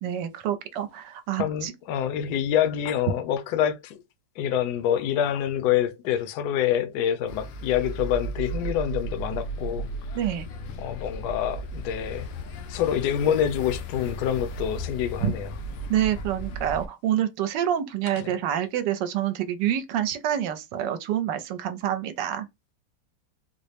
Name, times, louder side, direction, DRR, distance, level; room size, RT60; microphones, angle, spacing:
voice 1, 0.0-1.7 10.1-10.5 15.2-15.3 15.9-22.5, right 10 dB, 75° right, 1.2 m, -27 dB
voice 2, 1.4-4.0 4.4-10.2 10.8-12.3 12.7-15.5 18.2-18.4, left 10 dB, 70° left, 1.1 m, -26 dB
sound 1, 7.3-16.9, right 2 dB, 90° left, 1.4 m, -35 dB
4.0 x 2.1 x 3.2 m
omnidirectional pair, 2.0 m